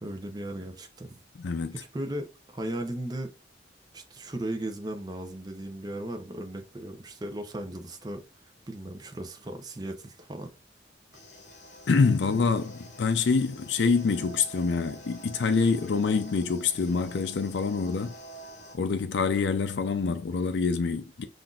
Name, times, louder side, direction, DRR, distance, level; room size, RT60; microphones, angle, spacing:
voice 1, 0.0-1.2 1.7-3.3 3.9-8.2 8.7-10.5, right 1 dB, 20° right, 0.6 m, -36 dB
voice 2, 1.4-1.8 11.9-18.2 18.7-21.2, left 4 dB, 75° left, 0.4 m, -26 dB
sound 1, 11.1-18.8, right 1 dB, 40° left, 1.2 m, -48 dB
5.7 x 2.5 x 2.3 m
head